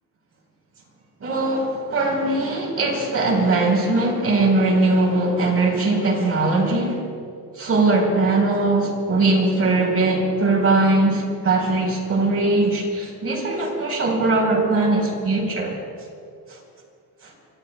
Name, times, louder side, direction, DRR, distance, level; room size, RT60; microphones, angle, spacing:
voice 1, 1.2-7.0 7.5-15.8 16.5-16.6 17.2-17.3, right 2 dB, 40° right, 0 dB, 4.5 m, -20 dB
25.0 x 24.5 x 2.3 m, 2.4 s
cardioid pair, 145°, 36 cm